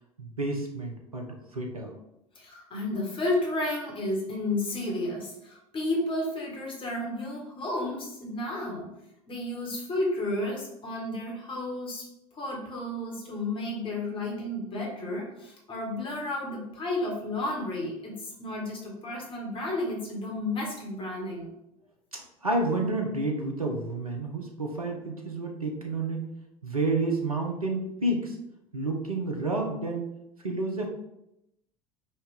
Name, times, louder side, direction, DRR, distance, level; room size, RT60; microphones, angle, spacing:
voice 1, 0.2-1.3 1.5-1.9 22.1-26.2 26.6-28.4 28.7-30.1 30.4-30.9, right 2 dB, 85° right, 1 dB, 0.7 m, -30 dB
voice 2, 2.3-8.9 9.3-12.0 12.3-21.5, left 1 dB, 30° left, -2 dB, 1.6 m, -32 dB
5.5 x 2.8 x 3.4 m, 0.86 s
figure-of-eight pair, 70°, 18 cm